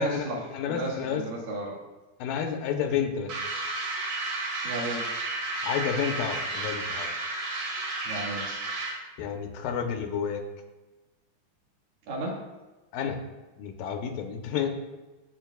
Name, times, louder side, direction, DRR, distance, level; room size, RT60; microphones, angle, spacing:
voice 1, 0.0-1.8 4.6-5.0 8.0-8.5 12.1-12.4, right 1 dB, 75° right, -3 dB, 3.3 m, -33 dB
voice 2, 0.5-1.2 2.2-3.3 5.6-7.1 9.2-10.4 12.9-13.2 13.6-14.8, left 7 dB, 80° left, 4 dB, 2.4 m, -30 dB
sound 1, 3.3-9.1, right 2 dB, 60° right, 2.9 m, -32 dB
14.0 x 7.5 x 2.3 m, 1.2 s
omnidirectional pair, 4.1 m